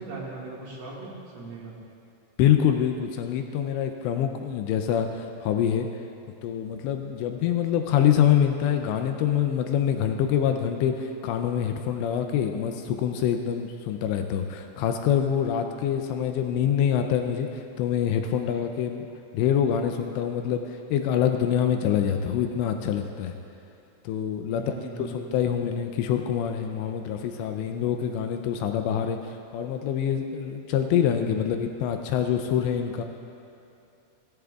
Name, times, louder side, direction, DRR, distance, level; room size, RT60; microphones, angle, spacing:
voice 1, 0.0-1.7 24.5-25.4 31.0-31.7, right 3 dB, 60° right, -6 dB, 3.4 m, -39 dB
voice 2, 2.4-5.9 6.4-19.1 19.3-23.3 24.0-33.0, left 9 dB, 85° left, 5 dB, 2.5 m, -25 dB
17.5 x 14.0 x 2.4 m, 2.7 s
omnidirectional pair, 5.6 m